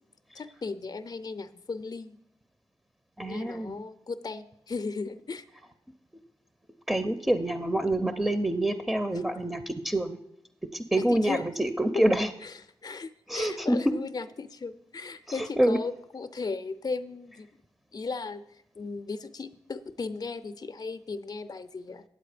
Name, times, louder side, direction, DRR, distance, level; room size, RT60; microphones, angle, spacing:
voice 1, 0.3-2.2 3.3-5.4 11.0-11.5 11.9-12.0 12.4-17.5 17.9-18.4 18.8-22.0, left 4 dB, 40° left, 11 dB, 0.6 m, -36 dB
voice 2, 3.2-3.8 6.9-10.2 10.7-12.3 13.3-13.8 15.3-15.8, right 1 dB, 5° right, 10 dB, 0.6 m, -26 dB
8.9 x 7.5 x 5.0 m, 0.78 s
cardioid pair, 60°, 11 cm